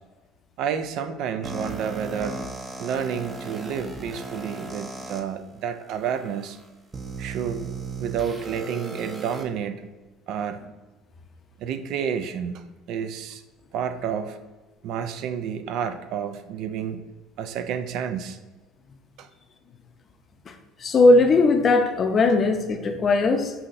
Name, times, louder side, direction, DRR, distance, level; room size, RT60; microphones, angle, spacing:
voice 1, 0.6-2.5 2.8-6.6 7.2-9.8 10.3-10.7 11.6-13.4 13.7-14.4 14.8-17.0 17.4-18.4 19.2-19.3, right 8 dB, 65° right, 9 dB, 0.3 m, -30 dB
sound 1, 1.4-5.2 5.9-6.0 6.9-9.4, right 3 dB, 25° right, 0.6 m, -36 dB
voice 2, 20.8-23.5, left 2 dB, 40° left, 6 dB, 0.6 m, -19 dB
5.6 x 2.8 x 2.6 m, 1.2 s
supercardioid pair, 80°, 0 cm